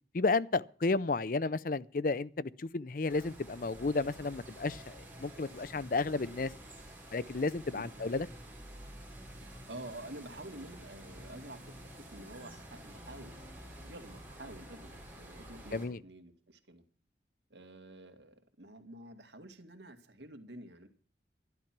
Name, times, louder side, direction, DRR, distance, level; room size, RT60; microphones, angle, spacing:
voice 1, 0.1-6.5 7.1-8.3 15.7-16.0, left 3 dB, 50° left, 0.5 m, -32 dB
sound 1, 3.1-15.9, right 1 dB, 10° right, 4.7 m, -50 dB
voice 2, 9.4-16.8 17.5-20.9, right 1 dB, 80° right, 2.1 m, -49 dB
12.0 x 12.0 x 6.0 m
head